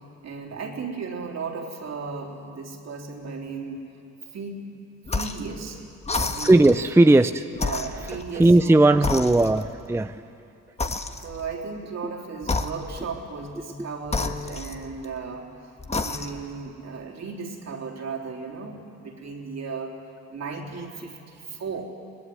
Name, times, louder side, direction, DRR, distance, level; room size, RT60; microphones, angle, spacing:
voice 1, 0.2-3.8 4.3-4.7 5.1-5.8 6.2-6.8 7.6-9.2 11.2-15.5 16.0-20.0 20.3-21.9, right 4 dB, 60° right, 0 dB, 3.7 m, -35 dB
sound 1, 5.1-5.5 6.0-6.8 7.5-8.7 9.0-9.8 10.8-11.5 12.4-13.1 14.1-15.2 15.8-16.5, left 3 dB, 20° left, 1.4 m, -30 dB
voice 2, 6.4-7.5 8.3-10.2 12.0-12.1, right 2 dB, 10° right, 10 dB, 0.6 m, -17 dB
24.0 x 19.5 x 9.6 m, 2.7 s
cardioid pair, 90°, 30 cm